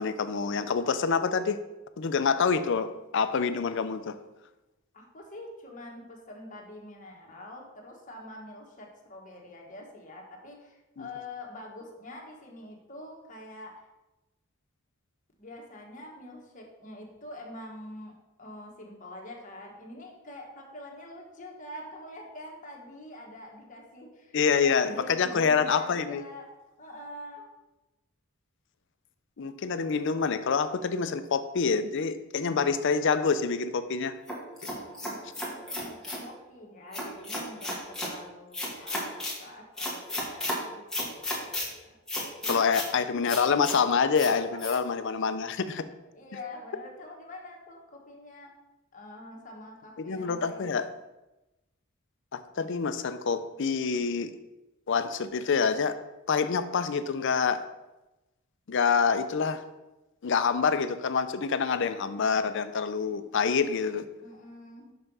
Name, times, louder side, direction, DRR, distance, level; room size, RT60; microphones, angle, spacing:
voice 1, 0.0-1.6 2.0-4.1 11.0-11.1 24.3-26.2 29.4-34.2 42.5-45.8 50.1-50.9 52.3-54.3 54.9-56.0 56.3-57.6 58.7-59.6 60.2-64.0, left 5 dB, 60° left, 11 dB, 0.5 m, -26 dB
voice 2, 4.9-13.7 15.4-26.5 26.8-27.4 34.5-42.0 42.4-42.9 44.5-44.6 46.1-48.5 48.9-50.7 64.2-64.9, left 1 dB, 40° left, 0 dB, 1.5 m, -45 dB
sound 1, 34.3-36.2 36.9-38.1 38.5-39.4 39.8-40.6 40.9-41.7 42.1-42.9 43.3-43.8 44.2-44.3 44.6-44.8, left 1 dB, 5° left, 1.5 m, -33 dB
5.9 x 5.5 x 5.4 m, 1.0 s
head